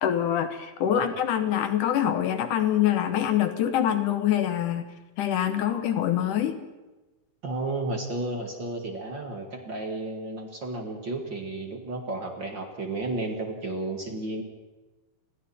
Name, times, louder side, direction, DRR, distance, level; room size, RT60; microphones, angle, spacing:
voice 1, 0.0-4.8 5.2-6.6, left 10 dB, 70° left, 9 dB, 2.5 m, -25 dB
voice 2, 7.4-14.4, right 2 dB, 35° right, 3 dB, 2.3 m, -32 dB
30.0 x 21.5 x 4.4 m, 1.1 s
omnidirectional pair, 4.0 m